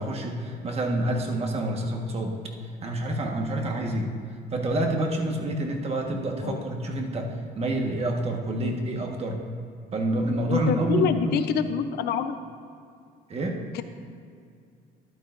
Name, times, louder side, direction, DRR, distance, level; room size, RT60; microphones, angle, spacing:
voice 1, 0.0-2.4 2.8-4.1 4.5-9.4 9.9-11.4 13.3-13.6, right 1 dB, 35° right, 2 dB, 1.5 m, -28 dB
voice 2, 10.5-12.4 13.7-13.8, left 8 dB, 75° left, 9 dB, 0.7 m, -26 dB
13.5 x 11.5 x 2.6 m, 2.4 s
cardioid pair, 110°, 17 cm